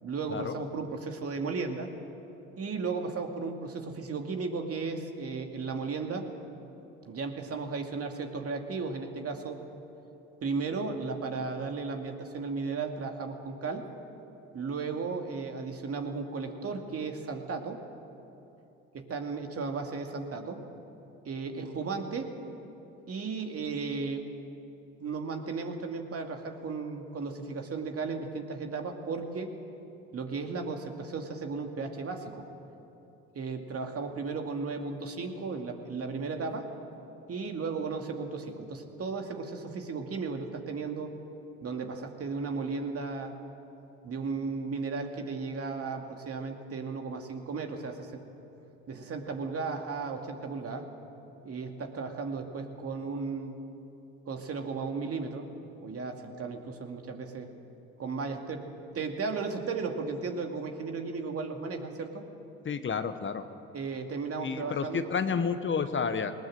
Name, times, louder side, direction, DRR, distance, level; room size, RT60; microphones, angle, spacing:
voice 1, 0.0-1.9 2.6-6.3 7.0-9.6 10.4-13.8 14.5-17.8 18.9-20.6 21.2-22.3 23.1-24.3 25.0-29.5 30.1-32.5 33.3-36.7 37.3-41.1 41.6-43.3 44.0-48.2 48.9-50.9 51.4-53.6 54.3-55.5 55.8-57.5 58.0-58.7 58.9-62.2 63.7-65.1, right 4 dB, 45° right, 4 dB, 2.4 m, -35 dB
voice 2, 62.6-63.4 64.4-66.3, left 6 dB, 40° left, 10 dB, 1.2 m, -30 dB
19.5 x 19.0 x 7.7 m, 3.0 s
hypercardioid pair, 65°, 32 cm